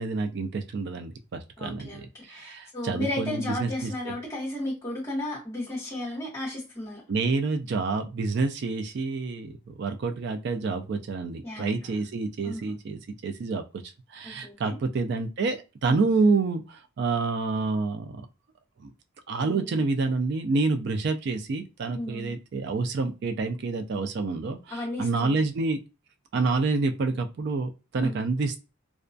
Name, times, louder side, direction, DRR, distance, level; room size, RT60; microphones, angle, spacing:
voice 1, 0.0-3.9 7.1-18.3 18.8-18.9 19.3-25.8 26.3-28.7, right 3 dB, 50° right, 6 dB, 0.3 m, -28 dB
voice 2, 1.6-7.0 11.4-11.9 12.4-12.8 14.2-14.8 15.8-16.0 19.4-19.8 21.9-22.4 24.7-25.4 28.0-28.2, left 1 dB, 20° left, -6 dB, 0.9 m, -34 dB
2.3 x 2.2 x 2.5 m, 0.29 s
head